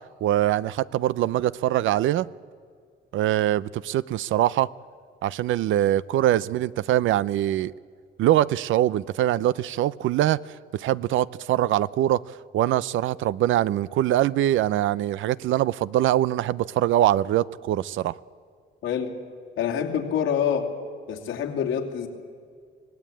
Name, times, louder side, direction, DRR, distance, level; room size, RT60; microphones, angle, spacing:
voice 1, 0.2-2.3 3.1-4.7 5.2-7.7 8.2-10.4 10.7-12.2 12.5-18.1, right 13 dB, 80° right, 18 dB, 0.5 m, -23 dB
voice 2, 18.8-19.2 19.6-20.7 21.1-22.1, left 8 dB, 90° left, 1 dB, 2.8 m, -26 dB
25.0 x 18.0 x 8.7 m, 2.1 s
cardioid pair, 90°, 20 cm